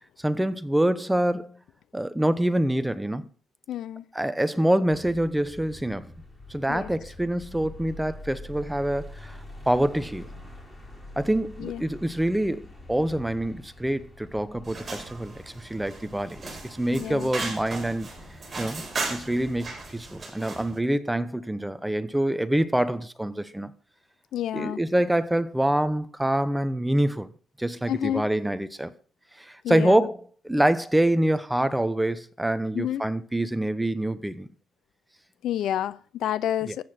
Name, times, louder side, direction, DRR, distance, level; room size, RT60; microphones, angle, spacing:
voice 1, 0.2-1.6 1.9-3.3 4.1-6.1 6.5-9.4 9.7-10.3 11.2-18.1 18.6-23.7 24.5-27.3 27.6-28.9 29.4-34.5 36.7-36.8, right 1 dB, 5° right, 1.0 m, -26 dB
voice 2, 3.7-4.0 6.7-6.9 11.6-11.8 16.9-17.3 24.3-24.8 27.9-28.3 29.6-30.1 32.7-33.0 35.4-36.8, left 11 dB, 70° left, 0.6 m, -29 dB
sound 1, 4.9-20.2, left 1 dB, 15° left, 4.1 m, -45 dB
sound 2, 14.6-20.8, right 3 dB, 25° right, 5.1 m, -37 dB
14.0 x 8.7 x 6.0 m
cardioid pair, 110°, 0 cm